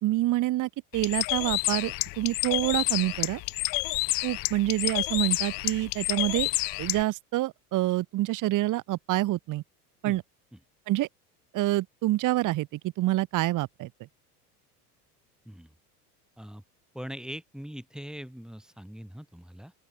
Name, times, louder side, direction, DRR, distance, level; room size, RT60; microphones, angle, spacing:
voice 1, 0.0-3.4 4.2-6.5 6.8-9.6 10.0-10.2 10.9-11.1 11.5-13.9, right 16 dB, 40° right, 1.0 m, -27 dB
Bird, 0.9-7.0, left 27 dB, 50° left, 0.6 m, -29 dB
voice 2, 16.9-19.7, equal, ahead, 1.3 m, -41 dB
open air
hypercardioid pair, 85°, 46 cm